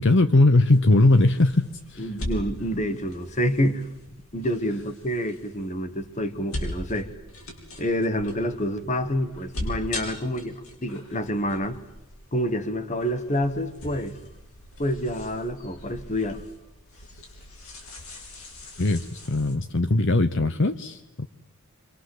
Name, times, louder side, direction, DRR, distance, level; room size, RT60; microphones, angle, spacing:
voice 1, 0.0-2.1 18.8-21.3, left 2 dB, 55° left, 0.9 m, -20 dB
sound 1, 0.7-19.5, left 1 dB, 75° left, 6.9 m, -40 dB
voice 2, 2.0-3.9 4.3-7.1 7.8-11.8 12.3-14.2 14.8-16.4, equal, 35° left, 1.5 m, -27 dB
27.5 x 25.5 x 7.9 m
head